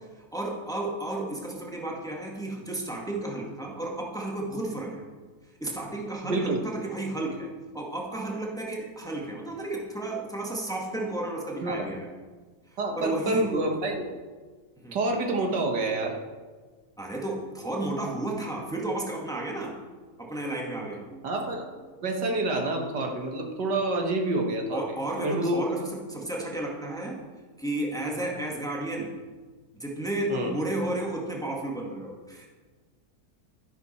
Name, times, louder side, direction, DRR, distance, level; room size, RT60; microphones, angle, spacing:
voice 1, 0.3-5.0 5.6-12.1 12.7-13.6 14.8-15.0 17.0-19.8 20.2-21.4 24.7-27.2 27.6-29.2 29.7-32.5, right 1 dB, ahead, -1 dB, 1.7 m, -33 dB
voice 2, 6.2-6.6 11.6-11.9 12.8-14.0 14.9-16.2 21.2-21.7 22.0-24.8 25.2-25.8 30.3-30.5, right 2 dB, 80° right, 2 dB, 2.1 m, -28 dB
12.5 x 11.0 x 4.3 m, 1.4 s
omnidirectional pair, 1.8 m